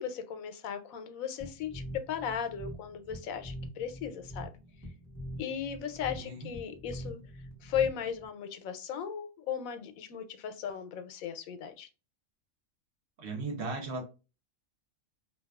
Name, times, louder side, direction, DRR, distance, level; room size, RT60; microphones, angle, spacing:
voice 1, 0.0-4.5 5.4-7.2 7.6-11.9, left 8 dB, 85° left, 1.0 m, -36 dB
sound 1, 1.4-8.3, equal, 15° right, 0.9 m, -44 dB
voice 2, 13.2-14.0, right 3 dB, 60° right, 0.9 m, -36 dB
2.5 x 2.3 x 2.3 m
omnidirectional pair, 1.4 m